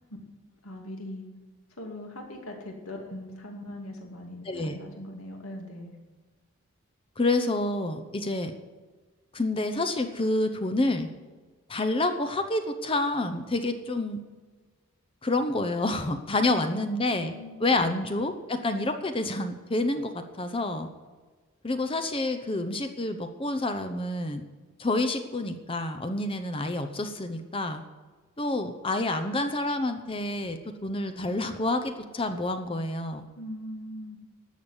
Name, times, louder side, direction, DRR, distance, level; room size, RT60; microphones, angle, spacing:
voice 1, 0.6-1.3 1.8-6.0 16.3-16.8 17.2-17.8 33.4-34.2, left 1 dB, 75° left, 1 dB, 2.6 m, -40 dB
voice 2, 4.5-4.8 7.2-8.5 9.3-11.1 11.7-14.2 15.2-17.3 17.6-20.9 21.6-24.4 24.8-27.8 28.4-33.2, left 2 dB, 25° left, 8 dB, 0.7 m, -28 dB
12.5 x 7.1 x 9.7 m, 1.4 s
head